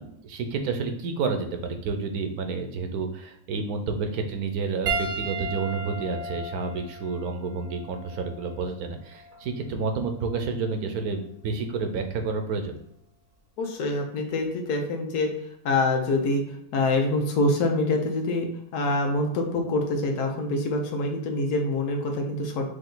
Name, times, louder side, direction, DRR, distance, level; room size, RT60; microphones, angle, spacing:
voice 1, 0.0-12.8, right 4 dB, 75° right, 5 dB, 1.2 m, -30 dB
Piano, 4.9-9.5 10.5-10.6 12.6-12.7, right 2 dB, 50° right, 0.9 m, -35 dB
voice 2, 13.6-15.3 15.6-18.5 18.7-22.7, left 2 dB, 90° left, 2 dB, 1.3 m, -25 dB
5.0 x 2.7 x 3.9 m, 0.74 s
omnidirectional pair, 1.6 m